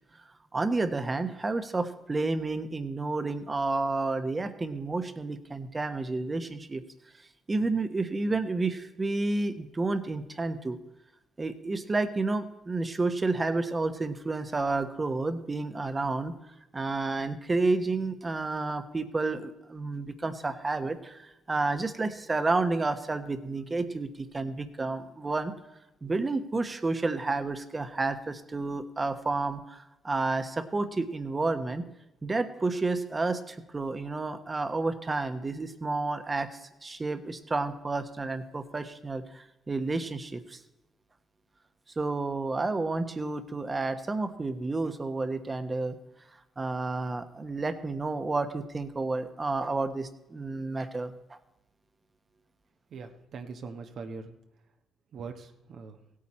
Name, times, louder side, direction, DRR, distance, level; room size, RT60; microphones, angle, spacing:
voice 1, 0.5-6.8 7.5-10.8 11.4-16.3 16.7-25.5 26.0-31.8 32.2-40.6 42.0-46.0 46.6-51.4, right 3 dB, 25° right, 10 dB, 1.1 m, -30 dB
voice 2, 52.9-54.4 55.1-56.0, right 4 dB, 60° right, 5 dB, 1.1 m, -42 dB
16.5 x 8.7 x 4.3 m, 0.95 s
cardioid pair, 90°, 0 cm